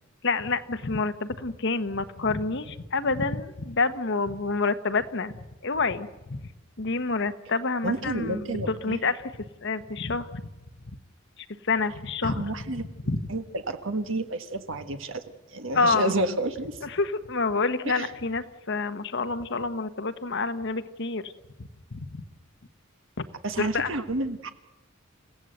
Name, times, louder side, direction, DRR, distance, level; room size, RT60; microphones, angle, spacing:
voice 1, 0.2-6.4 6.8-9.2 9.6-10.5 11.7-13.2 15.7-16.1 16.8-21.3 21.9-22.2 23.2-23.3 23.6-23.9, left 3 dB, 60° left, 11 dB, 1.2 m, -28 dB
voice 2, 7.8-9.0 12.2-12.9 13.3-15.2 15.5-16.8 17.9-18.1 23.4-24.5, right 1 dB, 65° right, 8 dB, 1.5 m, -30 dB
29.0 x 16.0 x 7.9 m, 1.0 s
head